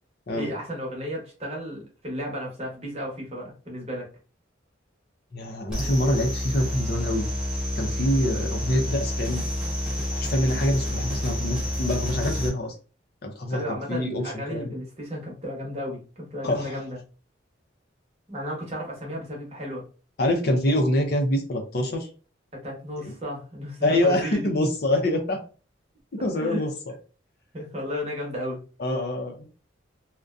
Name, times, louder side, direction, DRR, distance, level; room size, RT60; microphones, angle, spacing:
voice 1, 0.4-4.1 13.5-17.0 18.3-19.8 22.5-24.4 26.4-26.6 27.5-28.6, equal, 35° right, -1 dB, 0.8 m, -33 dB
voice 2, 5.3-7.3 7.8-9.5 10.1-12.7 13.2-14.2 14.5-14.7 16.4-16.8 20.2-22.1 23.0-23.1 23.8-25.4 26.1-26.7 28.8-29.5, left 1 dB, 55° left, 4 dB, 0.5 m, -25 dB
sound 1, 5.7-12.5, left 1 dB, 5° right, 0.7 m, -29 dB
2.5 x 2.1 x 2.3 m, 0.36 s
head